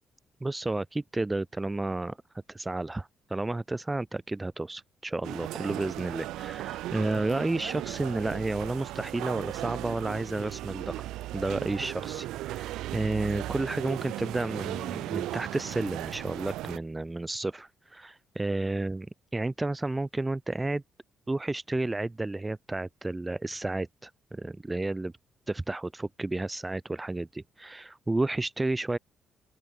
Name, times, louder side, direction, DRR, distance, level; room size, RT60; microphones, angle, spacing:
voice 1, 0.4-2.2 2.5-11.1 11.3-19.0 19.3-20.8 21.3-25.1 25.5-29.0, right 2 dB, 15° right, 0.6 m, -31 dB
sound 1, 5.2-16.8, right 15 dB, 90° right, 1.1 m, -36 dB
open air
cardioid pair, 90°, 0 cm